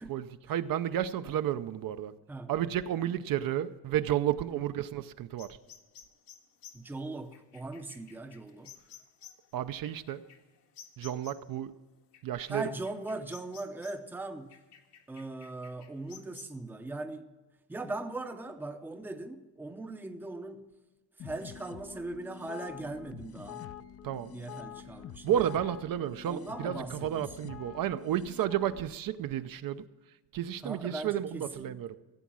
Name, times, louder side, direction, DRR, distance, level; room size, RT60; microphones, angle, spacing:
voice 1, 0.1-2.1 2.5-5.5 9.5-10.2 11.0-11.7 12.2-12.6 24.0-24.3 25.2-29.9 30.3-32.0, right 11 dB, 55° right, 0.6 m, -32 dB
sound 1, 5.4-11.6 12.1-14.1 14.5-16.5, left 8 dB, 75° left, 1.7 m, -54 dB
voice 2, 6.7-8.7 12.5-14.6 15.1-17.3 17.7-20.7 21.2-23.7 24.3-25.5 26.2-27.3 30.6-31.8, right 2 dB, 5° right, 0.6 m, -40 dB
sound 2, 21.2-28.9, left 10 dB, 35° left, 0.5 m, -46 dB
15.5 x 8.2 x 6.2 m
cardioid pair, 155°, 42 cm